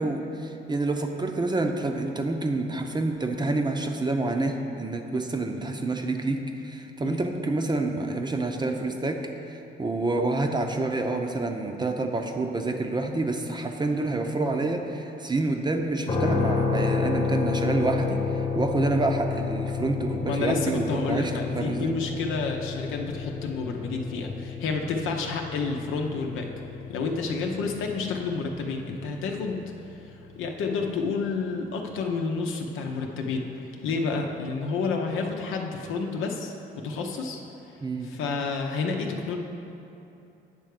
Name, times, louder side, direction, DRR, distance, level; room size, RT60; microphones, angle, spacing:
voice 1, 0.0-9.2 9.8-21.9 37.8-38.1, right 2 dB, 20° right, 4 dB, 0.6 m, -28 dB
sound 1, 16.1-30.1, left 5 dB, 35° left, 1.1 m, -31 dB
voice 2, 20.3-26.5 26.9-29.6 30.4-36.5 36.8-37.4 38.0-39.4, left 4 dB, 90° left, 2 dB, 0.8 m, -30 dB
9.0 x 3.4 x 6.5 m, 2.9 s
cardioid pair, 90°, 20 cm